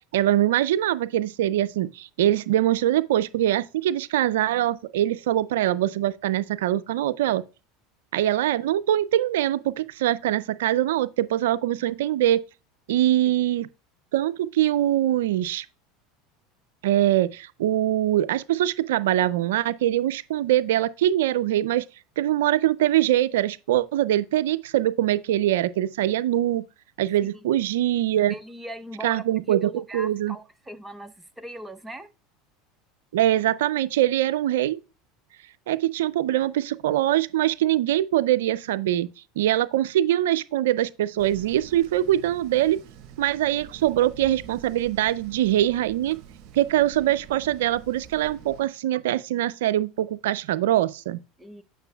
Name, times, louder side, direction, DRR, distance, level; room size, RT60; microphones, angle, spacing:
voice 1, 0.1-7.4 8.1-12.4 12.9-13.7 14.1-15.7 16.8-21.8 22.2-26.6 27.0-28.3 29.0-30.3 33.1-34.8 35.7-39.1 39.4-42.8 43.2-46.2 46.6-51.2, right 13 dB, 80° right, 0.3 m, -23 dB
voice 2, 28.3-32.1 51.4-51.6, equal, 5° right, 0.8 m, -40 dB
sound 1, 41.2-48.6, right 8 dB, 55° right, 1.0 m, -46 dB
9.0 x 6.0 x 2.2 m
hypercardioid pair, 95°, 0 cm